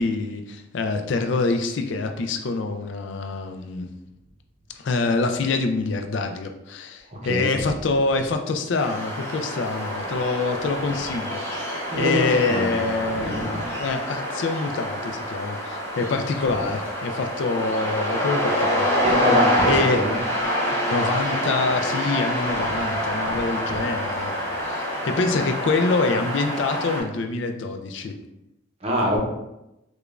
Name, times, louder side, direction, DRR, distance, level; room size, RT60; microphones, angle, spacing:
voice 1, 0.0-3.9 4.8-19.1 19.7-20.0 20.7-24.3 24.6-28.1, left 3 dB, 65° left, 6 dB, 0.4 m, -26 dB
voice 2, 7.1-7.5 11.9-13.7 19.0-20.2 22.9-23.4 23.7-23.8 28.8-29.2, equal, 30° right, -2 dB, 0.7 m, -26 dB
sound 1, 8.8-27.0, equal, 15° left, 0.6 m, -26 dB
4.9 x 2.3 x 2.4 m, 0.91 s
head